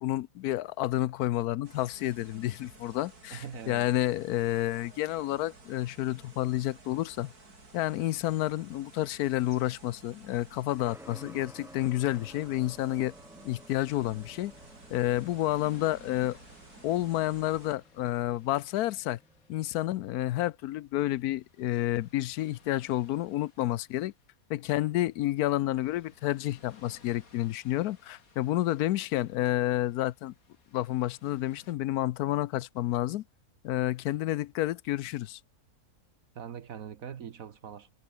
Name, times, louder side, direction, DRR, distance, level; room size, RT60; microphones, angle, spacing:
voice 1, 0.0-7.3 7.7-13.1 13.4-14.5 14.9-16.4 16.8-19.2 19.5-24.1 24.5-30.3 30.7-33.2 33.6-35.4, left 15 dB, 85° left, 1.1 m, -30 dB
sound 1, 1.6-17.8, right 3 dB, 85° right, 5.1 m, -53 dB
voice 2, 3.3-3.9 36.3-37.9, right 8 dB, 65° right, 1.4 m, -42 dB
sound 2, 10.8-20.5, equal, ahead, 2.7 m, -55 dB
sound 3, 13.8-31.7, left 4 dB, 65° left, 3.1 m, -61 dB
omnidirectional pair, 1.6 m